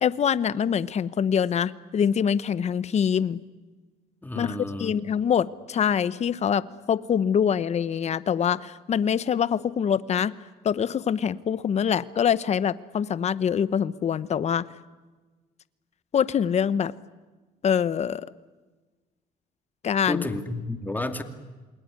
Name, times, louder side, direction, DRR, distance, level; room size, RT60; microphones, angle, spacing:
voice 1, 0.0-3.4 4.3-10.3 10.6-14.7 16.1-16.9 17.6-18.3 19.8-20.3, left 8 dB, 40° left, 16 dB, 0.9 m, -24 dB
voice 2, 4.2-5.0 20.0-21.2, left 2 dB, 10° left, 7 dB, 2.4 m, -31 dB
28.0 x 21.0 x 9.6 m, 1.3 s
cardioid pair, 110°, 17 cm